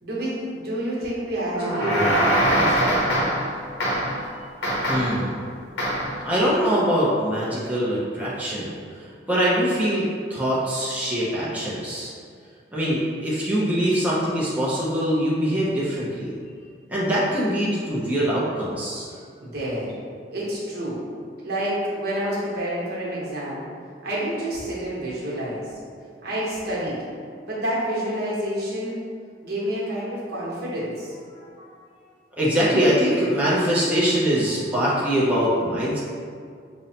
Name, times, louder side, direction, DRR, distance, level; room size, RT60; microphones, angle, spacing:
voice 1, 0.0-3.2 19.4-19.9 20.3-21.0 21.4-23.6 24.0-25.7 26.2-27.0 27.5-29.0 29.4-31.1, equal, 60° right, -7 dB, 1.0 m, -28 dB
sound 1, 1.5-3.5 3.8-4.2 4.6-5.2 5.8-6.2, equal, 80° left, 0.9 m, -22 dB
voice 2, 4.9-5.3 6.2-12.1 12.7-16.3 16.9-19.1 31.4-31.5 32.4-36.0, equal, 10° right, -8 dB, 0.5 m, -23 dB
5.2 x 2.1 x 2.7 m, 2.1 s
head